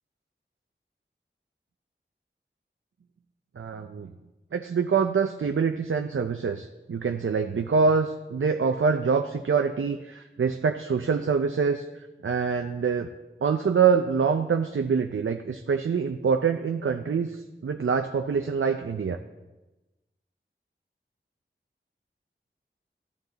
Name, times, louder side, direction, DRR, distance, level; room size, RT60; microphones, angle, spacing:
voice 1, 3.6-4.1 4.5-13.1 13.4-19.2, right 5 dB, 85° right, 5 dB, 0.5 m, -25 dB
13.0 x 11.0 x 4.0 m, 1.1 s
wide cardioid pair, 50°, 20 cm